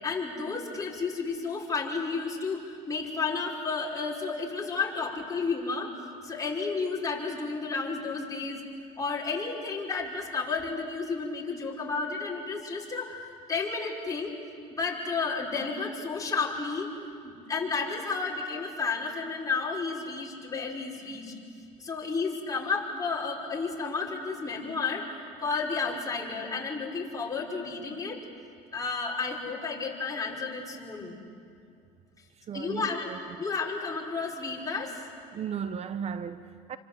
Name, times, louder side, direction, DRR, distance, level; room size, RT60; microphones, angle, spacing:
voice 1, 0.0-5.9 6.2-8.6 9.0-14.3 14.7-16.9 17.2-21.3 21.8-25.0 25.4-28.2 28.7-31.2 32.5-33.1 33.4-35.0, left 4 dB, 20° left, 5.6 m, -32 dB
voice 2, 32.4-33.2 35.3-36.8, right 7 dB, 40° right, 0.9 m, -36 dB
29.0 x 25.5 x 7.9 m
supercardioid pair, 95°, 16 cm